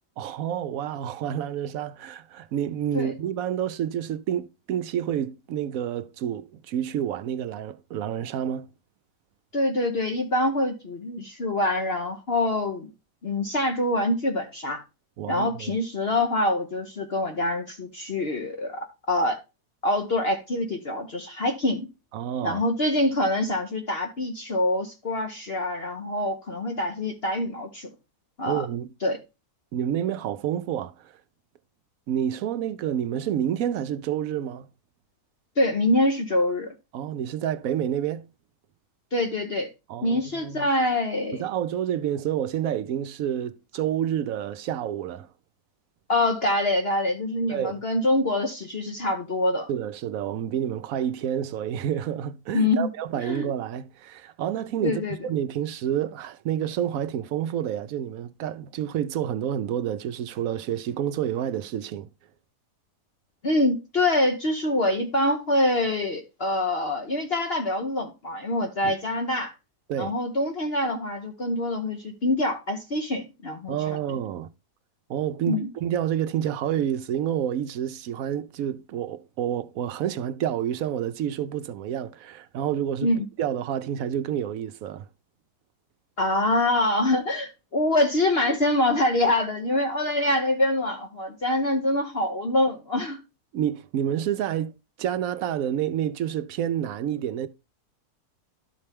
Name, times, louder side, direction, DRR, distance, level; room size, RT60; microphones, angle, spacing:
voice 1, 0.2-8.7 15.2-15.7 22.1-22.6 28.5-28.9 29.7-31.2 32.1-34.7 36.9-38.3 39.9-40.7 41.3-45.3 47.5-47.8 49.7-62.1 68.8-68.9 69.9-70.1 73.7-74.5 75.1-83.1 83.4-85.1 93.5-94.7 95.0-97.5, right 10 dB, 70° right, 0.9 m, -29 dB
voice 2, 9.5-12.9 13.2-14.8 15.3-19.4 19.8-21.9 22.4-27.9 28.4-28.6 29.0-29.2 35.6-36.7 39.1-39.7 40.0-41.4 46.1-49.7 52.5-52.9 53.2-53.5 54.8-55.2 63.4-69.5 70.0-73.8 75.5-75.7 83.0-83.2 86.2-93.2, left 1 dB, 45° left, 1.1 m, -25 dB
12.0 x 4.3 x 3.3 m
omnidirectional pair, 1.7 m